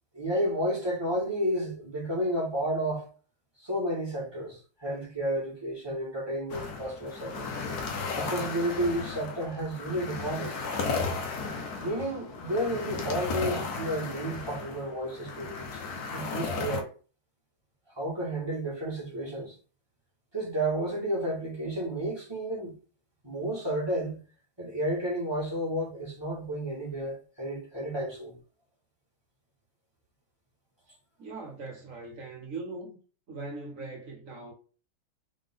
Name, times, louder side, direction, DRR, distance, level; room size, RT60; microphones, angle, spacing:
voice 1, 0.1-3.1 3.6-7.5 8.1-10.6 11.8-15.8 16.1-16.9 17.9-19.5 20.3-22.7 23.2-24.2 24.6-28.4, right 1 dB, 15° right, 1.7 m, -31 dB
sound 1, 6.5-16.8, left 4 dB, 55° left, 1.2 m, -35 dB
voice 2, 31.2-33.0 33.3-34.5, right 3 dB, 55° right, 1.0 m, -40 dB
3.9 x 3.7 x 3.7 m
omnidirectional pair, 2.3 m